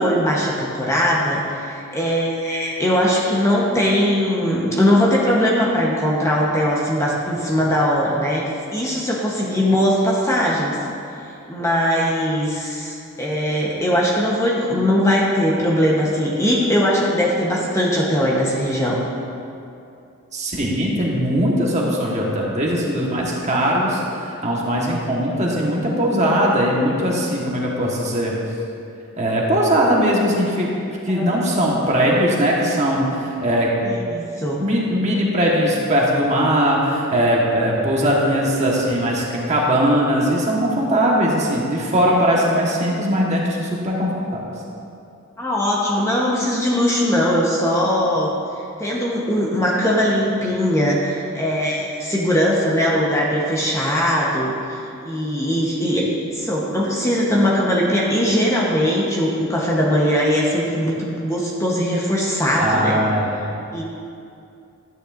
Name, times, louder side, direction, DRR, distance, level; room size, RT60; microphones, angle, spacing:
voice 1, 0.0-10.8 11.2-19.0 31.1-31.4 33.8-34.6 45.4-48.3 48.8-56.1 56.3-63.0 63.7-63.8, equal, 15° left, -4 dB, 0.9 m, -20 dB
voice 2, 20.3-28.3 29.2-30.7 31.0-33.7 34.6-44.4 62.6-63.5, equal, 30° right, -3 dB, 1.3 m, -20 dB
12.0 x 9.8 x 2.5 m, 2.6 s
head